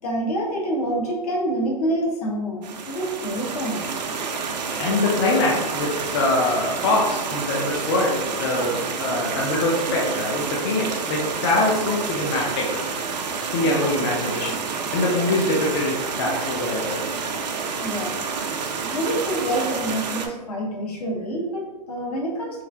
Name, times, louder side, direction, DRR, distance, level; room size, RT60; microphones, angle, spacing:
voice 1, 0.0-3.9 17.8-18.2 18.9-22.6, right 1 dB, 65° left, -1 dB, 1.0 m, -27 dB
sound 1, 2.6-20.3, right 5 dB, 85° right, 0.6 m, -29 dB
voice 2, 4.8-12.8 13.5-14.6 14.9-17.1, left 2 dB, 40° left, -3 dB, 0.5 m, -23 dB
3.1 x 2.4 x 3.3 m, 1.2 s
hypercardioid pair, 155°, 21 cm